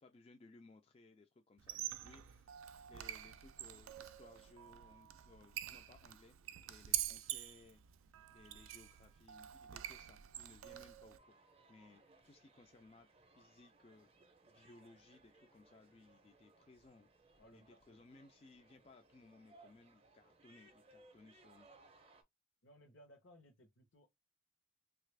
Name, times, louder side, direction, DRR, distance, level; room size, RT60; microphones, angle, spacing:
voice 1, 0.0-6.4 6.7-7.8 8.3-11.4 11.7-14.1 14.5-17.1 17.5-21.7, left 3 dB, 30° left, 0.3 m, -62 dB
Squeak, 1.6-11.2, right 13 dB, 85° right, 0.3 m, -46 dB
sound 1, 11.2-22.2, right 2 dB, 30° right, 0.5 m, -66 dB
voice 2, 17.4-18.0 22.6-24.1, equal, 75° left, 0.8 m, -63 dB
3.2 x 2.4 x 3.2 m
head